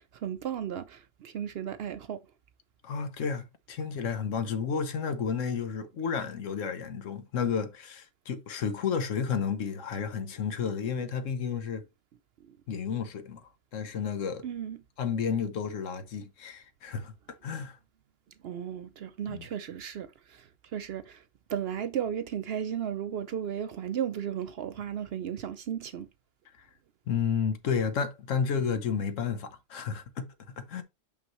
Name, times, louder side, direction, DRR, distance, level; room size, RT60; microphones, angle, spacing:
voice 1, 0.0-2.2 14.4-14.8 18.4-20.5 20.7-21.2 21.5-26.1, right 9 dB, 65° right, 0.7 m, -35 dB
voice 2, 2.8-11.8 12.7-14.4 15.0-17.1 17.4-17.8 19.3-19.5 26.6-26.7 27.1-30.8, left 6 dB, 75° left, 1.2 m, -32 dB
5.9 x 5.5 x 3.0 m
omnidirectional pair, 1.3 m